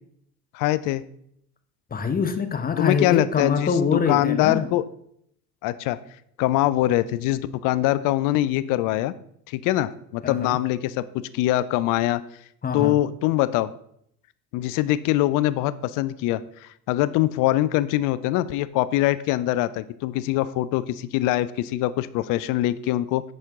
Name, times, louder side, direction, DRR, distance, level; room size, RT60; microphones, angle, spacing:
voice 1, 0.5-1.0 2.8-3.7 4.1-4.8 5.6-6.0 6.4-9.1 9.5-11.0 11.3-12.2 12.7-13.7 14.5-23.2, left 15 dB, 45° left, 15 dB, 0.5 m, -23 dB
voice 2, 1.9-4.7 10.2-10.6 12.6-13.0, left 5 dB, 20° left, 8 dB, 0.8 m, -24 dB
10.0 x 4.4 x 3.5 m, 0.71 s
hypercardioid pair, 65°, 46 cm